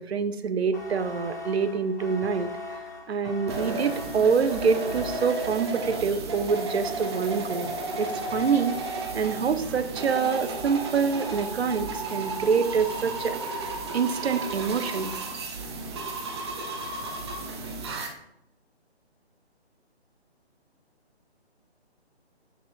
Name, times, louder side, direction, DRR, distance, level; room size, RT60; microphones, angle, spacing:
voice 1, 0.0-2.5 3.1-8.8 9.1-15.2, right 5 dB, 70° right, 11 dB, 0.7 m, -26 dB
sound 1, 0.7-6.0, left 2 dB, 15° left, 0.5 m, -40 dB
sound 2, 3.5-18.1, right 2 dB, 25° right, 0.8 m, -33 dB
7.4 x 6.7 x 2.3 m, 0.82 s
figure-of-eight pair, 150°, 33 cm